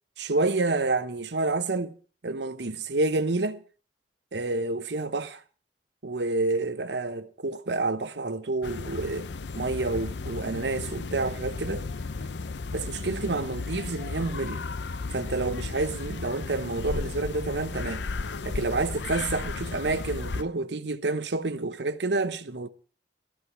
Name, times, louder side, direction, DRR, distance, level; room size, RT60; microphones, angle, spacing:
voice 1, 0.2-2.0 2.2-3.6 4.3-5.4 6.0-9.3 9.5-11.9 12.7-14.6 15.1-18.0 18.4-22.7, right 3 dB, 75° right, 1.0 m, -29 dB
sound 1, 8.6-20.4, left 3 dB, 80° left, 0.7 m, -34 dB
14.0 x 11.5 x 6.0 m
head